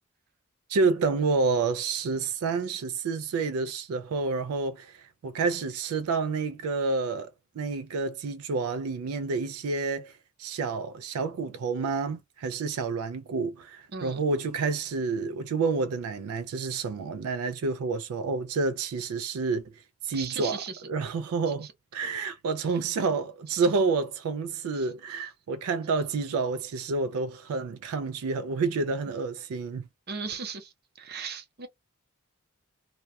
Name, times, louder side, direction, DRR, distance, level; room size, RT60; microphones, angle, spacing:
voice 1, 0.7-10.1 10.4-19.6 20.0-29.9, right 4 dB, 85° right, 0.4 m, -29 dB
voice 2, 20.1-20.8 21.6-21.7 23.5-23.6 24.7-24.9 30.1-31.7, right 5 dB, 50° right, 0.7 m, -37 dB
2.3 x 2.1 x 2.6 m
head